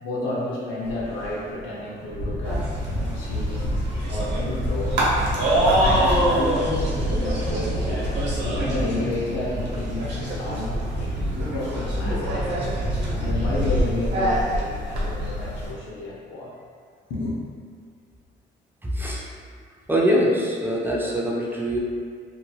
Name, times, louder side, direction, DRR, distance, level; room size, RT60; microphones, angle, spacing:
voice 1, 0.0-5.1 5.8-12.3 13.2-16.5 17.1-17.4, left 2 dB, 85° left, -5 dB, 0.7 m, -31 dB
sound 1, 0.8-14.0, equal, 35° left, 0.9 m, -30 dB
sound 2, 2.4-15.7, equal, 65° right, 0.9 m, -26 dB
voice 2, 18.8-19.2 19.9-21.8, equal, 10° right, -4 dB, 0.5 m, -23 dB
2.8 x 2.7 x 2.3 m, 2.1 s
cardioid pair, 90°, 20 cm